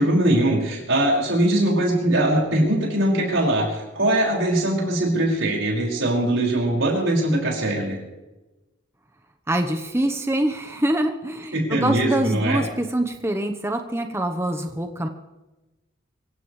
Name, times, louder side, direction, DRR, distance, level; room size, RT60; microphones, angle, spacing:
voice 1, 0.0-8.0 11.5-12.6, right 1 dB, 65° right, -1 dB, 5.6 m, -21 dB
voice 2, 9.5-15.1, right 1 dB, 10° right, 5 dB, 1.0 m, -25 dB
25.0 x 16.0 x 3.3 m, 1.1 s
head